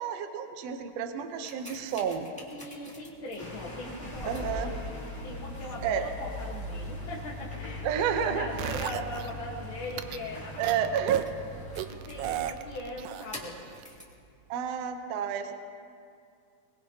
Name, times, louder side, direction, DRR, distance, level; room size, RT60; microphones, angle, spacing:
voice 1, 0.0-2.3 4.2-4.7 5.8-6.1 7.8-8.7 10.6-11.3 14.5-15.5, right 8 dB, 70° right, 6 dB, 1.6 m, -30 dB
sound 1, 1.2-14.2 14.9-15.0, left 1 dB, 5° left, 1.3 m, -41 dB
voice 2, 2.5-4.8 5.2-10.6 11.8-13.7, left 1 dB, 50° left, -3 dB, 1.7 m, -40 dB
sound 2, 3.4-10.8, left 2 dB, 20° left, 0.9 m, -48 dB
sound 3, 8.6-9.3 9.9-10.2 10.6-11.2 11.8-13.5 13.8-13.9, right 12 dB, 90° right, 1.6 m, -35 dB
22.5 x 21.5 x 2.8 m, 2.3 s
omnidirectional pair, 3.8 m